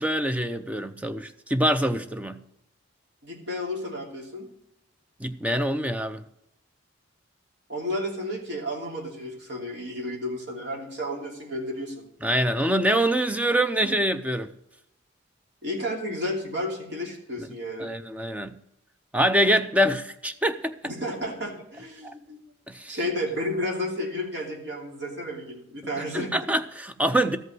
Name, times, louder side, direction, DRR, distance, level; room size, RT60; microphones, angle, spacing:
voice 1, 0.0-2.4 5.2-6.2 12.2-14.5 17.8-18.6 19.1-20.7 22.0-22.1 22.7-23.0 26.1-27.4, equal, 5° right, 0.5 m, -25 dB
voice 2, 3.2-4.5 7.7-12.1 15.6-17.9 20.8-22.4 22.9-26.3, left 1 dB, 55° right, 3.0 m, -32 dB
13.5 x 5.4 x 7.8 m
head